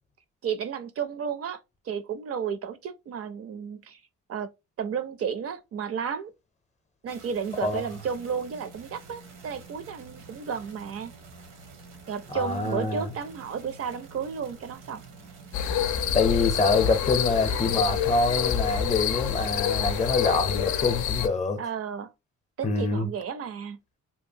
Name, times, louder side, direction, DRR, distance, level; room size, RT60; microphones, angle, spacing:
voice 1, 0.4-1.6 1.8-4.0 4.3-4.5 4.8-6.3 7.0-11.1 12.1-15.0 21.6-22.1 22.6-23.8, right 7 dB, 50° right, 0.5 m, -32 dB
sound 1, 7.1-20.0, right 4 dB, 90° right, 0.9 m, -48 dB
voice 2, 12.3-13.1 16.1-21.6 22.6-23.1, left 3 dB, 25° left, 0.6 m, -25 dB
sound 2, 15.5-21.3, left 8 dB, 70° left, 0.5 m, -27 dB
2.8 x 2.3 x 2.6 m
cardioid pair, 90°, 30 cm